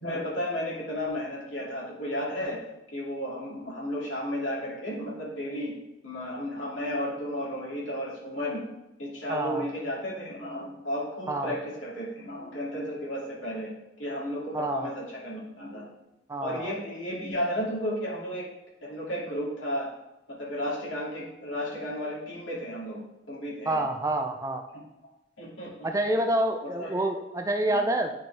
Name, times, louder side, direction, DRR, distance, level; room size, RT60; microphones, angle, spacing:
voice 1, 0.0-2.6 2.9-5.7 6.0-8.6 9.0-13.7 14.0-15.9 16.4-18.5 18.8-19.9 20.4-23.0 23.3-23.8 24.7-24.8 25.4-25.7 26.8-26.9 27.7-27.8, equal, 85° left, -5 dB, 2.3 m, -33 dB
voice 2, 9.3-9.7 11.3-11.5 14.5-14.9 16.3-16.7 23.7-24.6 25.8-28.1, right 1 dB, 15° right, 5 dB, 0.4 m, -27 dB
8.4 x 4.3 x 3.3 m, 0.90 s
head